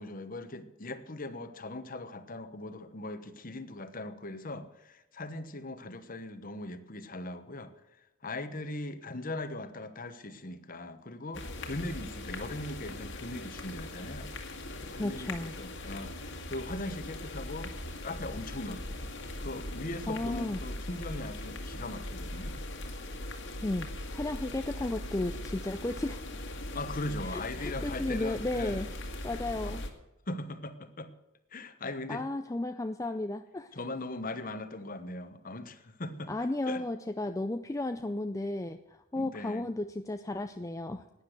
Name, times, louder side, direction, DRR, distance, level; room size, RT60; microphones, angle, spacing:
voice 1, 0.0-7.7 8.2-14.3 14.8-17.8 18.0-19.0 19.4-22.6 26.7-28.9 29.6-29.8 30.3-31.1 31.5-32.2 33.7-36.3 36.7-36.8 39.2-39.7, left 2 dB, 40° left, 10 dB, 1.1 m, -39 dB
sound 1, 11.3-29.9, left 1 dB, 60° left, 1.9 m, -40 dB
voice 2, 15.0-15.5 20.1-20.6 23.6-23.9 24.1-26.2 27.2-28.9 29.2-29.8 32.1-33.8 36.3-41.0, left 2 dB, 15° left, 8 dB, 0.4 m, -34 dB
12.0 x 9.9 x 8.1 m, 0.93 s
head